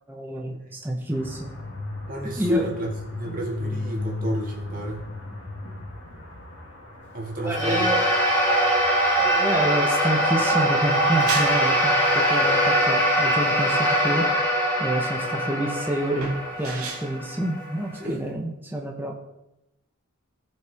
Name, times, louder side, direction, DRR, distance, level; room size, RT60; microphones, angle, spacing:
voice 1, 0.1-1.5 2.4-2.7 7.4-8.0 9.2-14.3 14.8-16.3 16.6-19.1, right 1 dB, 10° right, 0 dB, 0.9 m, -28 dB
sound 1, 1.1-15.0, left 2 dB, 60° left, 2.2 m, -38 dB
voice 2, 2.1-5.1 7.1-7.9 17.9-18.2, right 1 dB, 40° right, -2 dB, 2.1 m, -30 dB
sound 2, 7.5-18.0, equal, 10° left, 2.5 m, -22 dB
sound 3, 10.9-18.3, right 3 dB, 85° right, 1.9 m, -36 dB
16.5 x 5.6 x 3.5 m, 0.92 s
head